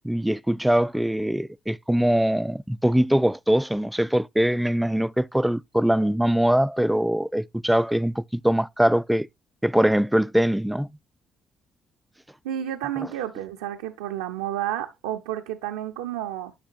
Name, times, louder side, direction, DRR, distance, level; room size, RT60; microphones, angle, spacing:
voice 1, 0.0-9.3 9.6-10.9, right 1 dB, 5° right, 0.3 m, -22 dB
voice 2, 12.4-16.5, right 11 dB, 85° right, 0.5 m, -31 dB
10.0 x 5.9 x 2.5 m
hypercardioid pair, 50°, 0 cm